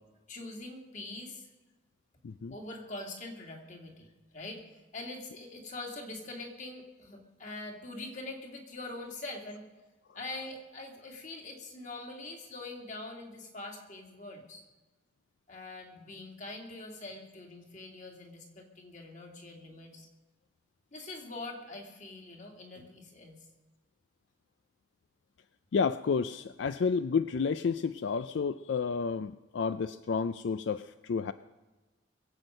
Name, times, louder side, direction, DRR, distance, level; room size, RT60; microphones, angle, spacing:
voice 1, 0.3-1.5 2.5-9.7 10.1-14.6 15.5-20.1 20.9-23.5, left 2 dB, 40° left, 1 dB, 2.4 m, -44 dB
voice 2, 25.7-31.3, left 5 dB, 75° left, 12 dB, 0.4 m, -31 dB
21.5 x 8.0 x 6.5 m, 1.2 s
head